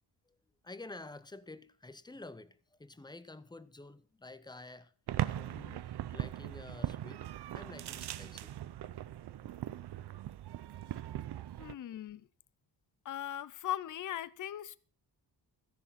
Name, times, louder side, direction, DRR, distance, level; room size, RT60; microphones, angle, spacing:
voice 1, 0.6-9.0 9.4-10.3 10.6-11.2, left 2 dB, 10° left, 0.7 m, -51 dB
sound 1, 5.1-11.7, right 12 dB, 65° right, 0.7 m, -39 dB
voice 2, 11.6-12.3 13.0-14.8, left 11 dB, 45° left, 0.6 m, -39 dB
14.5 x 10.5 x 5.7 m
wide cardioid pair, 160°, 42 cm